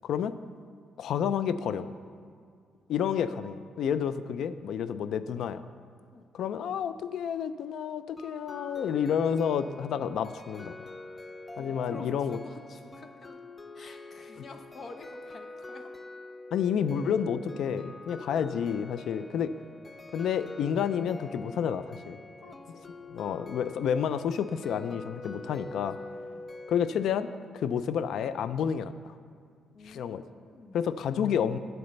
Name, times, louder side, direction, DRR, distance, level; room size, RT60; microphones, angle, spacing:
voice 1, 0.0-0.3 1.0-1.9 2.9-5.6 6.3-10.7 11.6-12.4 16.5-19.5 20.1-22.2 23.1-26.0 26.7-27.3 27.5-29.1 29.9-30.2 30.7-31.6, left 8 dB, 75° left, 13 dB, 0.4 m, -30 dB
sound 1, 8.2-27.4, left 2 dB, 20° left, 0.5 m, -45 dB
voice 2, 11.6-13.4 13.7-15.9 18.0-18.3 22.4-22.9 25.3-26.5 29.7-30.9, left 3 dB, 45° left, 5 dB, 1.0 m, -49 dB
12.0 x 7.9 x 3.3 m, 2.2 s
cardioid pair, 90°, 0 cm